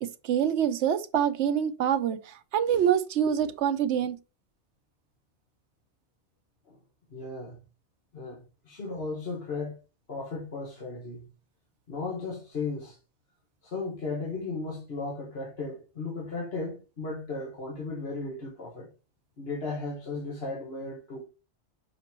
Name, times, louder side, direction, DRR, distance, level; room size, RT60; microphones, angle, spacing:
voice 1, 0.0-4.2, right 9 dB, 80° right, 0.9 m, -26 dB
voice 2, 7.1-7.6 8.1-9.8 10.1-11.2 11.9-13.0 13.6-18.9 19.4-21.3, left 3 dB, 60° left, 1.7 m, -35 dB
6.8 x 5.1 x 3.0 m
omnidirectional pair, 1.2 m